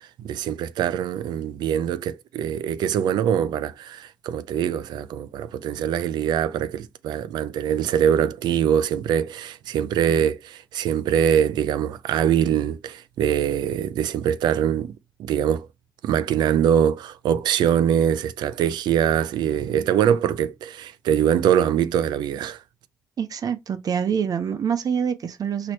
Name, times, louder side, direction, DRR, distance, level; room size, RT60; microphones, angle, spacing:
voice 1, 0.2-14.9 15.2-15.7 16.0-22.6, right 9 dB, 90° right, 0.4 m, -23 dB
voice 2, 23.2-25.7, right 7 dB, 60° right, 0.8 m, -25 dB
4.3 x 2.9 x 3.1 m
cardioid pair, 70°, 7 cm